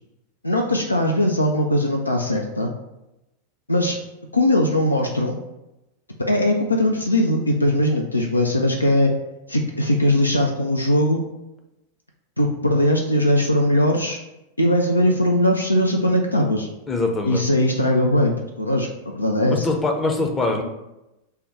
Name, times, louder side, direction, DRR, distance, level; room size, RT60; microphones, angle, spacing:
voice 1, 0.4-2.7 3.7-4.0 4.3-5.4 6.2-9.1 9.5-11.2 12.4-14.2 14.6-16.7 17.3-19.7, left 1 dB, 85° left, 2 dB, 0.3 m, -20 dB
voice 2, 16.9-17.4 19.5-20.6, left 2 dB, 15° left, 2 dB, 0.6 m, -23 dB
3.4 x 2.2 x 4.2 m, 0.93 s
figure-of-eight pair, 90°, 0 cm